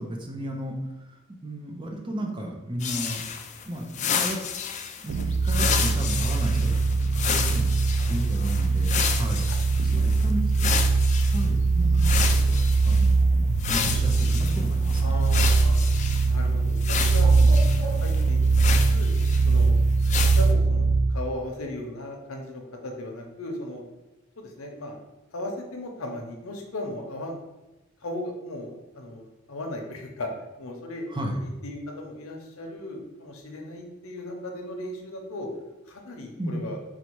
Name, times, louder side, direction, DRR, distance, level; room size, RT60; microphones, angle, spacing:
voice 1, 0.0-3.2 3.7-4.4 5.0-7.7 8.1-9.5 9.8-10.7 11.3-15.2 17.2-17.6 31.1-31.4 36.4-36.6, right 1 dB, 25° right, 2 dB, 0.6 m, -34 dB
sound 1, 2.8-11.5 12.0-13.1 13.6-16.3 16.8-19.6 20.0-20.5, left 7 dB, 35° left, 0.3 m, -31 dB
sound 2, 5.1-21.2, right 3 dB, 80° right, 0.3 m, -22 dB
Bird, 13.8-19.3, right 1 dB, 15° left, 1.0 m, -44 dB
voice 2, 15.0-15.8 16.3-17.3 17.6-18.5 18.8-19.1 19.5-19.7 20.1-23.8 24.4-25.0 25.3-27.4 28.0-30.3 30.6-35.5 35.9-36.8, left 1 dB, 90° left, 2 dB, 0.7 m, -37 dB
4.1 x 2.3 x 4.5 m, 1.0 s
head